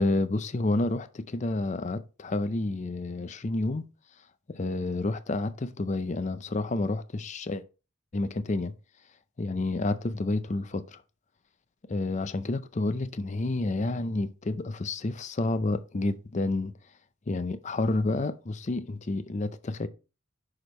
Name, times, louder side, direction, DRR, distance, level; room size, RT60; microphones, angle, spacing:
voice 1, 0.0-3.9 4.5-7.6 8.1-8.7 9.4-11.0 11.9-16.7 17.3-19.9, left 2 dB, 35° left, 0.5 m, -29 dB
6.2 x 4.9 x 4.1 m
head